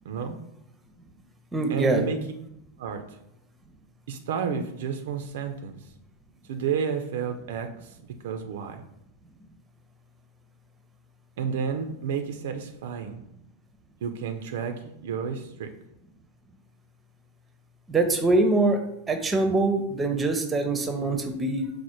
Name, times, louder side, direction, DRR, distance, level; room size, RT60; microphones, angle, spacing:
voice 1, 0.1-0.4 1.7-2.2 2.8-3.0 4.1-5.8 6.5-7.7 8.2-8.8 11.4-13.2 14.0-15.7, right 6 dB, 55° right, 6 dB, 0.4 m, -31 dB
voice 2, 1.5-2.0 17.9-18.8 19.1-21.7, right 2 dB, 15° right, 6 dB, 0.6 m, -23 dB
4.9 x 2.1 x 4.3 m, 0.79 s
figure-of-eight pair, 90°, 0 cm